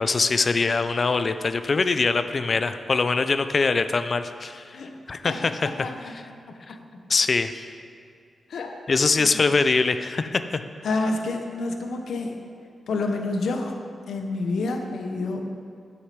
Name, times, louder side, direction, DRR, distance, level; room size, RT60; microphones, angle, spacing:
voice 1, 0.0-4.8 5.1-5.5 6.7-6.8 7.1-7.6 8.9-10.6, left 4 dB, 35° left, 10 dB, 0.3 m, -23 dB
voice 2, 5.2-7.0 8.5-8.8 9.2-9.5 10.8-12.4 12.9-13.8 14.1-15.5, left 3 dB, 80° left, 4 dB, 0.9 m, -29 dB
8.0 x 6.2 x 5.9 m, 2.3 s
wide cardioid pair, 180°, 0 cm